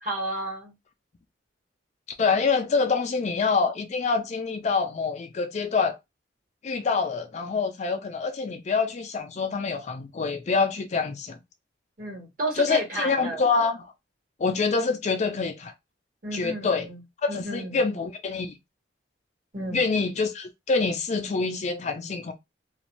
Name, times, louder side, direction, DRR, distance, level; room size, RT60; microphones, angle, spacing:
voice 1, 0.0-0.7 12.0-13.4 16.2-17.0 17.3-17.9 19.5-19.8, right 1 dB, 45° right, 1.3 m, -32 dB
voice 2, 2.2-6.0 6.6-11.4 12.6-13.8 14.4-15.7 16.3-16.9 17.2-18.6 19.7-22.3, left 4 dB, 40° left, 0.4 m, -26 dB
2.5 x 2.3 x 3.0 m
head